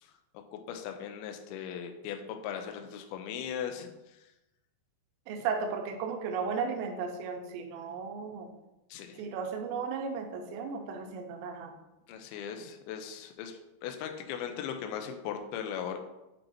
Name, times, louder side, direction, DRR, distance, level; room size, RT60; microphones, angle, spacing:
voice 1, 0.5-3.9 8.9-9.2 12.1-16.0, left 8 dB, 90° left, 5 dB, 2.2 m, -38 dB
voice 2, 5.3-8.5 9.2-11.8, right 5 dB, 85° right, 3 dB, 3.0 m, -35 dB
7.2 x 5.3 x 2.8 m, 0.95 s
omnidirectional pair, 5.2 m